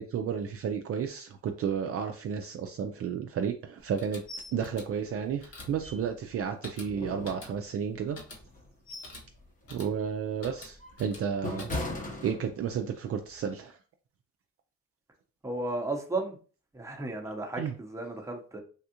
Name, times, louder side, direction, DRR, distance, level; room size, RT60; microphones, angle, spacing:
voice 1, 0.0-4.2 4.5-8.2 9.7-11.7 12.2-13.8 17.6-17.7, right 7 dB, 50° right, 5 dB, 0.4 m, -32 dB
sound 1, 3.8-12.2, left 2 dB, 50° left, 1.2 m, -49 dB
sound 2, 4.3-4.6 4.9-5.0 5.5-6.4 6.9-7.9 8.5-9.3 9.6-9.9 10.4-12.9 13.3-13.5, left 1 dB, 25° left, 0.8 m, -39 dB
voice 2, 15.4-16.4 16.7-18.6, right 2 dB, 10° right, 2 dB, 0.7 m, -34 dB
3.5 x 2.3 x 2.8 m, 0.38 s
cardioid pair, 90°, 30 cm